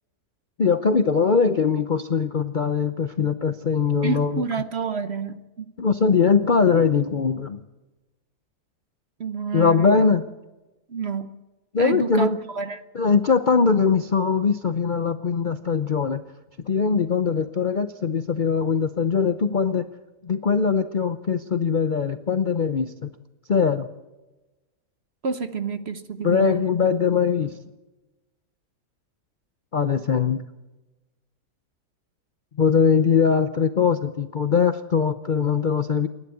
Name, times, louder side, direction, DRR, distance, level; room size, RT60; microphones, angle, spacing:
voice 1, 0.6-4.4 5.8-7.7 9.5-10.2 11.7-12.4 12.9-16.2 16.6-19.9 20.2-23.1 23.5-23.9 26.2-27.6 29.7-30.4 32.6-36.1, left 5 dB, 45° left, 9 dB, 0.6 m, -21 dB
voice 2, 4.0-5.7 9.2-10.1 10.9-11.3 11.8-12.8 25.2-26.7, right 5 dB, 45° right, 10 dB, 1.0 m, -29 dB
28.0 x 11.5 x 8.4 m, 1.1 s
omnidirectional pair, 1.8 m